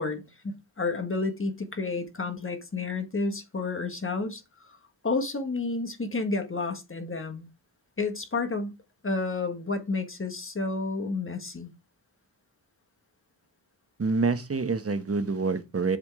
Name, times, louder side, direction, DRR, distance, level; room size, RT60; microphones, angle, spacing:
voice 1, 0.0-4.7 5.0-7.5 8.0-8.7 9.0-11.7, left 3 dB, 30° left, 1.5 m, -31 dB
voice 2, 14.0-16.0, right 4 dB, 35° right, 1.1 m, -27 dB
7.4 x 3.7 x 4.8 m
cardioid pair, 75°, 43 cm